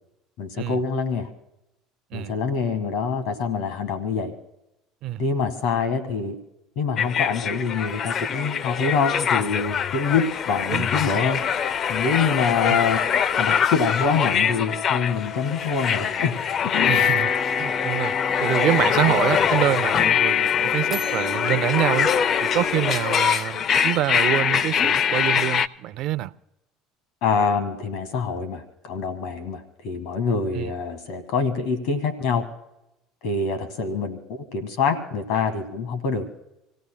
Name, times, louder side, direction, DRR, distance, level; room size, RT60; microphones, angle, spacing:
voice 1, 0.4-1.3 2.1-4.3 5.2-6.4 6.7-11.4 11.9-13.0 13.4-16.3 16.6-17.1 27.2-32.4 33.2-36.3, left 5 dB, 70° left, 1.7 m, -25 dB
sound 1, 7.0-25.7, left 7 dB, 45° left, 0.5 m, -23 dB
voice 2, 16.9-17.3 17.6-18.1 18.4-22.1 22.4-26.3 30.5-30.7, right 14 dB, 60° right, 0.5 m, -26 dB
sound 2, 20.9-23.7, left 1 dB, 10° left, 1.6 m, -41 dB
27.5 x 17.0 x 2.3 m
supercardioid pair, 90°, 0 cm